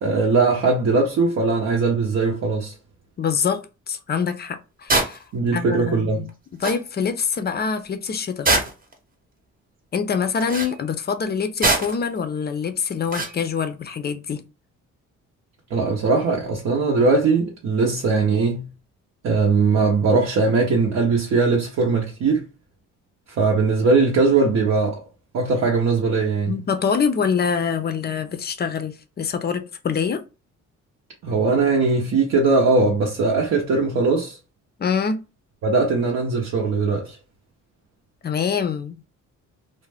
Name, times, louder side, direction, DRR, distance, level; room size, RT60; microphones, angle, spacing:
voice 1, 0.0-2.7 5.3-6.2 15.7-18.7 19.2-22.4 23.3-25.0 25.3-26.6 31.2-34.4 35.6-37.2, right 4 dB, 60° right, 0.7 m, -20 dB
voice 2, 3.2-5.2 5.5-6.3 6.6-8.5 9.9-14.4 26.5-30.2 34.8-35.2 38.2-39.0, left 6 dB, 35° left, 0.5 m, -25 dB
sound 1, 4.9-5.2 6.3-6.4 6.6-6.8 8.4-8.9 10.4-10.7 11.6-12.0 13.1-13.4, right 2 dB, 30° right, 0.8 m, -21 dB
2.5 x 2.1 x 3.3 m
cardioid pair, 90°, 30 cm